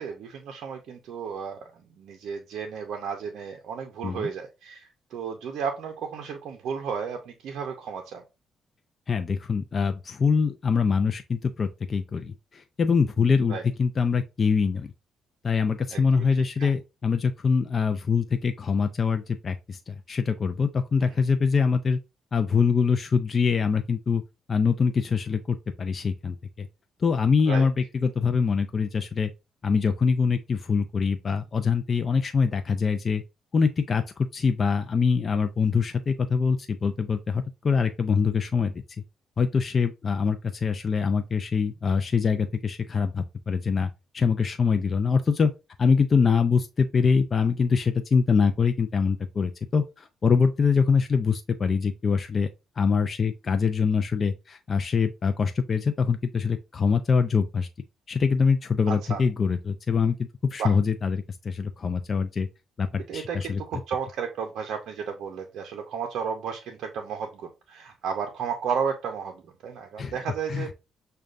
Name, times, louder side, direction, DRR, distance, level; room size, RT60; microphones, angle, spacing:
voice 1, 0.0-8.2 13.5-13.6 15.9-16.7 21.0-21.1 27.5-27.7 58.9-59.2 60.6-60.8 63.1-70.7, right 6 dB, 75° right, 0.5 m, -33 dB
voice 2, 9.1-14.9 15.4-22.0 22.3-24.2 24.5-26.7 27.0-29.3 29.6-33.2 33.5-38.7 39.4-45.5 45.8-52.5 52.8-57.7 58.1-62.5 62.8-63.6 70.0-70.1 70.5-70.7, left 5 dB, 40° left, 0.4 m, -24 dB
6.3 x 2.2 x 2.4 m
cardioid pair, 90°, 0 cm